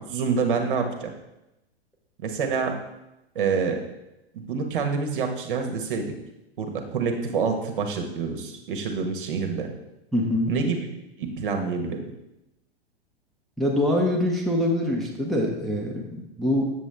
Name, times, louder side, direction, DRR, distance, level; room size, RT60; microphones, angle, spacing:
voice 1, 0.1-1.1 2.2-2.7 3.3-3.8 4.5-6.1 6.6-9.7 10.5-10.9 11.2-12.0, right 5 dB, 55° right, 4 dB, 1.3 m, -27 dB
voice 2, 10.1-10.5 13.6-16.6, left 1 dB, ahead, -3 dB, 0.9 m, -24 dB
7.3 x 7.0 x 3.4 m, 0.92 s
figure-of-eight pair, 100°, 31 cm